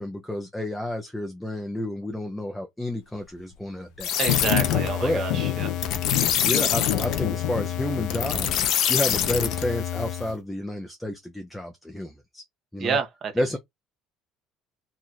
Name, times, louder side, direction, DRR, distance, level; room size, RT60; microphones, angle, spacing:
voice 1, 0.0-4.2 5.0-5.2 6.4-12.4 12.7-13.0 13.4-13.6, left 1 dB, 5° left, 0.5 m, -30 dB
sound 1, 4.0-10.3, left 9 dB, 50° left, 0.6 m, -26 dB
voice 2, 4.2-5.7 12.8-13.3, right 6 dB, 30° right, 0.9 m, -28 dB
sound 2, 4.3-4.9 5.3-8.1, left 11 dB, 90° left, 0.6 m, -28 dB
2.9 x 2.4 x 4.0 m
cardioid pair, 175°, 0 cm